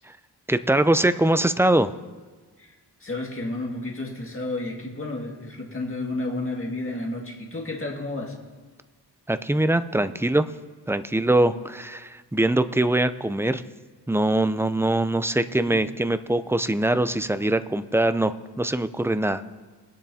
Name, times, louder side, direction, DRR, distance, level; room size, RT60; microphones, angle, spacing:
voice 1, 0.5-1.9 9.3-10.5 10.9-13.6 14.1-19.4, right 1 dB, 5° right, 11 dB, 0.3 m, -22 dB
voice 2, 3.0-8.4 15.7-15.8, left 2 dB, 30° left, -1 dB, 1.9 m, -31 dB
20.5 x 10.5 x 2.8 m, 1.4 s
wide cardioid pair, 95°, 41 cm